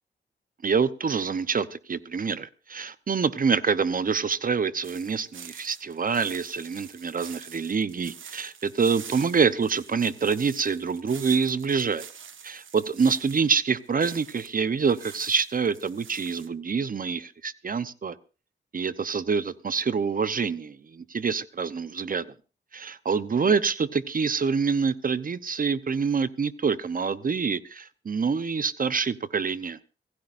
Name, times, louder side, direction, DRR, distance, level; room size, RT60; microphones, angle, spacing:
voice 1, 0.6-12.1 12.4-18.2 18.7-22.3 22.7-29.8, right 5 dB, 45° right, 14 dB, 0.9 m, -26 dB
sound 1, 4.8-14.5 14.8-16.5, right 7 dB, 85° right, 1.5 m, -46 dB
25.5 x 16.5 x 2.6 m, 0.34 s
wide cardioid pair, 100°, 20 cm